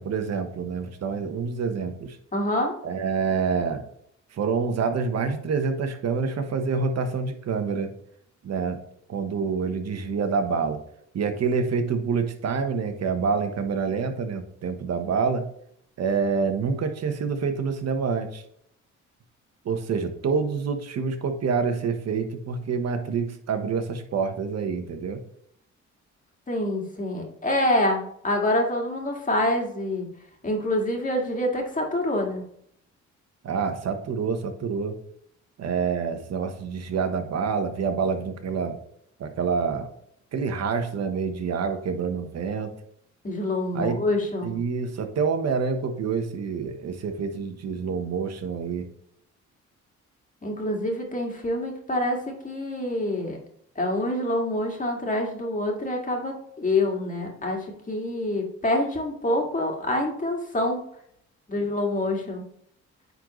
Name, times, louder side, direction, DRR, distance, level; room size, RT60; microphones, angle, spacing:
voice 1, 0.0-2.2 2.8-3.8 4.3-7.9 8.4-8.8 9.1-10.8 11.1-15.4 16.0-18.4 19.6-25.2 33.4-35.0 35.6-38.8 39.2-39.9 40.3-42.7 43.7-44.0 44.4-48.9, right 5 dB, 55° right, 7 dB, 1.2 m, -27 dB
voice 2, 2.3-2.7 26.5-30.1 30.4-32.4 43.2-44.6 50.4-53.4 53.8-60.8 61.5-62.5, left 1 dB, 25° left, 1 dB, 2.0 m, -26 dB
9.5 x 4.0 x 3.1 m, 0.68 s
cardioid pair, 90°, 30 cm